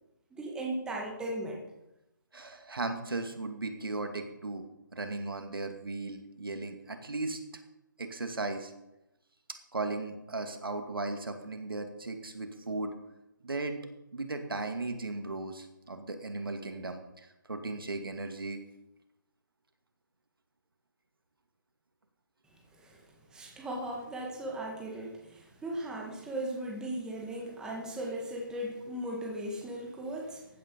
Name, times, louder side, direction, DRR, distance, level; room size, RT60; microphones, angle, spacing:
voice 1, 0.3-1.7 22.7-30.5, right 1 dB, 5° right, -1 dB, 1.9 m, -37 dB
voice 2, 2.3-4.6 4.9-7.4 8.0-8.7 9.7-12.9 13.4-13.8 14.1-18.6, right 3 dB, 85° right, 6 dB, 2.4 m, -36 dB
15.5 x 10.0 x 5.5 m, 0.92 s
figure-of-eight pair, 155°, 12 cm